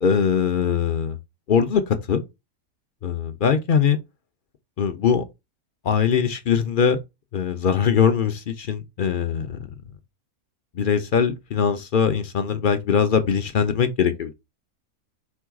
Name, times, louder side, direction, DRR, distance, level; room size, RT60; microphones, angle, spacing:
voice 1, 0.0-1.2 1.5-2.2 3.0-4.0 4.8-5.2 5.8-7.0 7.3-9.7 10.7-14.3, left 7 dB, 55° left, 0.6 m, -21 dB
4.5 x 2.3 x 4.6 m
omnidirectional pair, 1.5 m